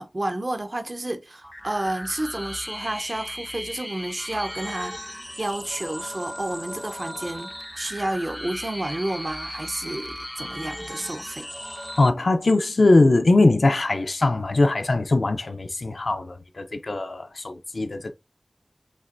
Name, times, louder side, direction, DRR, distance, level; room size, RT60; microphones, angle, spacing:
voice 1, 0.0-11.5, right 1 dB, 45° right, 0.8 m, -31 dB
sound 1, 1.4-12.1, equal, 5° left, 0.4 m, -36 dB
voice 2, 12.0-18.1, left 2 dB, 85° left, 0.5 m, -21 dB
5.5 x 2.9 x 2.5 m
wide cardioid pair, 55°, 0 cm